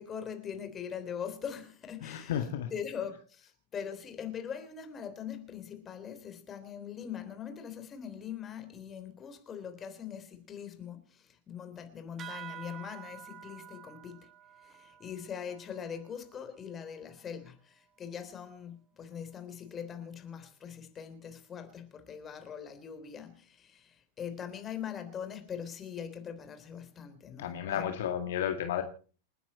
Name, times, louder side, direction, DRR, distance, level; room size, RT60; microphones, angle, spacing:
voice 1, 0.0-2.4 2.7-14.3 14.6-27.8, left 8 dB, 25° left, 3.6 m, -42 dB
voice 2, 2.0-2.7 27.4-28.8, left 9 dB, 55° left, 1.9 m, -32 dB
sound 1, 12.2-17.1, right 10 dB, 30° right, 1.3 m, -49 dB
29.0 x 10.0 x 4.3 m
figure-of-eight pair, 90°, 0 cm